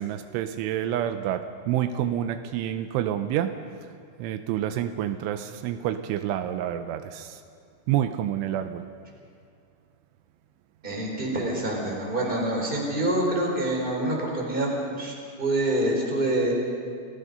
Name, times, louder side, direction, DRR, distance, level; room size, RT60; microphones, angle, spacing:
voice 1, 0.0-3.5 4.2-7.4 7.9-8.8, right 11 dB, 85° right, 8 dB, 3.1 m, -28 dB
voice 2, 10.8-16.5, right 1 dB, 10° right, -1 dB, 3.8 m, -26 dB
28.5 x 17.0 x 5.4 m, 2.3 s
omnidirectional pair, 5.6 m